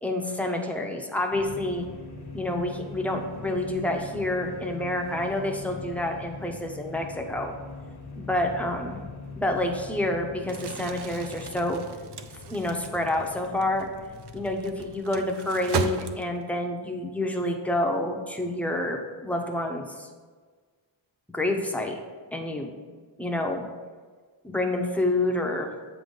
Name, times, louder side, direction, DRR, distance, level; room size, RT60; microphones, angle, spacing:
voice 1, 0.0-1.9 2.3-7.6 8.2-9.0 9.4-11.8 12.5-13.9 14.3-20.1 21.3-22.0 22.3-22.7 23.2-23.7 24.4-25.7, left 1 dB, 5° left, 2 dB, 0.6 m, -28 dB
sound 1, 1.3-15.0, left 3 dB, 55° left, 0.9 m, -42 dB
Crumpling crinkling, 10.4-16.6, right 7 dB, 60° right, 0.5 m, -36 dB
7.9 x 3.9 x 5.3 m, 1.5 s
wide cardioid pair, 165°, 46 cm